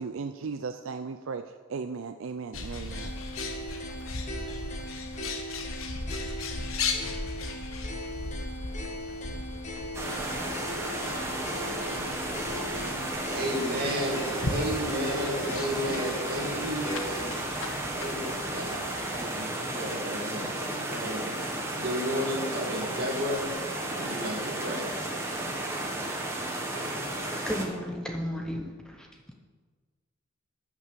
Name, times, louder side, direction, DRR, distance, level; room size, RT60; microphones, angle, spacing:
voice 1, 0.0-1.4 1.7-3.1, right 5 dB, 65° right, 8 dB, 0.4 m, -36 dB
Bird, 2.5-19.3, left 3 dB, 70° left, 1.2 m, -38 dB
sound 1, 2.9-17.3, equal, 35° left, 1.5 m, -39 dB
sound 2, 9.9-27.7, right 1 dB, 10° right, 1.3 m, -33 dB
voice 2, 13.0-17.4 18.0-18.3 18.5-18.8 19.1-21.3 21.7-23.5 23.9-24.9, equal, 45° right, 0 dB, 2.3 m, -33 dB
voice 3, 27.5-29.1, equal, 5° left, 1 dB, 0.7 m, -33 dB
12.0 x 6.0 x 7.3 m, 1.5 s
head